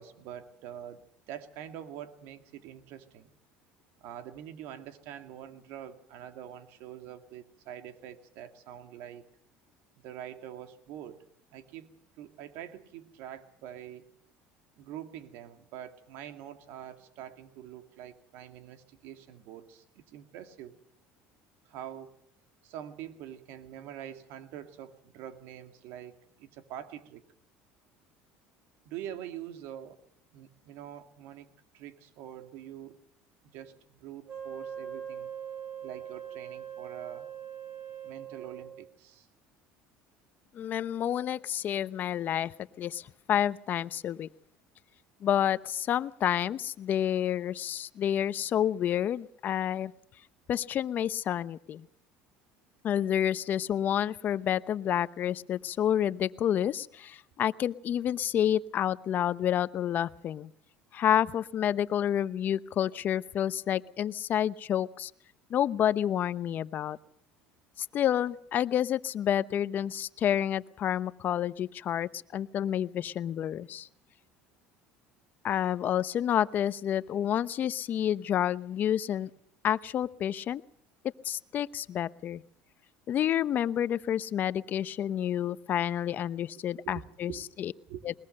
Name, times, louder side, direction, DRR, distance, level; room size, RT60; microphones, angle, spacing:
voice 1, 0.0-3.3 4.0-9.2 10.0-11.2 11.5-14.1 14.8-20.8 21.7-22.1 22.6-26.1 26.4-27.2 28.9-30.0 30.3-31.5 31.7-33.0 33.5-35.3 35.8-37.3 38.0-39.3 86.8-87.4 87.9-88.1, right 10 dB, 75° right, 8 dB, 2.3 m, -45 dB
Wind instrument woodwind instrument, 34.3-38.9, right 8 dB, 35° right, 3.3 m, -41 dB
voice 2, 40.5-42.5 42.8-44.3 45.2-49.9 50.5-51.9 52.8-60.5 60.9-65.1 65.5-67.0 67.8-73.9 75.4-79.3 79.6-80.6 81.2-82.4 83.1-87.3 87.6-87.7 88.0-88.1, left 10 dB, 45° left, 16 dB, 0.8 m, -29 dB
21.0 x 21.0 x 6.6 m, 0.68 s
supercardioid pair, 110°, 4 cm